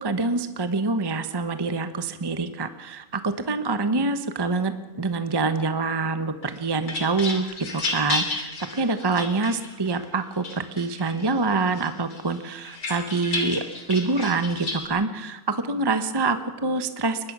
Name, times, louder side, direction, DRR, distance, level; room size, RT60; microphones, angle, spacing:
voice 1, 0.0-13.6 13.9-17.3, right 3 dB, 20° right, 10 dB, 0.9 m, -26 dB
sound 1, 6.4-10.0 10.4-11.3 11.8-14.9, left 3 dB, 80° left, 3.4 m, -32 dB
23.0 x 20.5 x 6.2 m, 1.0 s
omnidirectional pair, 1.6 m